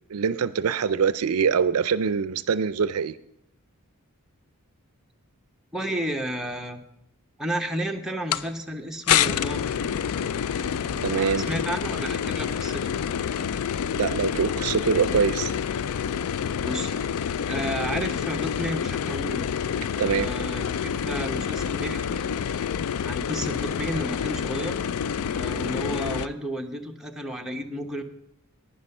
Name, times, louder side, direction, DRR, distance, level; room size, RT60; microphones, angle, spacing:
voice 1, 0.0-3.2 11.0-11.5 13.9-15.5 20.0-20.3, right 6 dB, 75° right, 15 dB, 0.4 m, -24 dB
voice 2, 5.7-6.8 7.4-9.9 10.8-13.0 16.6-16.9 17.5-19.5 19.9-22.2 23.0-24.8 25.3-28.0, equal, ahead, 1 dB, 0.9 m, -32 dB
sound 1, 8.3-8.4 9.1-26.3, left 8 dB, 80° left, 0.4 m, -28 dB
11.5 x 9.7 x 5.4 m, 0.80 s
head